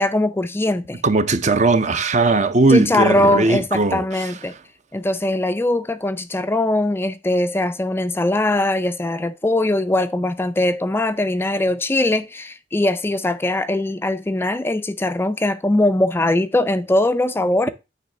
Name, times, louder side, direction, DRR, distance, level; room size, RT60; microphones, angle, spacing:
voice 1, 0.0-1.0 2.7-4.5 4.9-17.7, left 1 dB, 15° left, 0.4 m, -21 dB
voice 2, 1.0-4.3, right 3 dB, 40° right, 0.7 m, -18 dB
9.3 x 3.4 x 6.6 m
head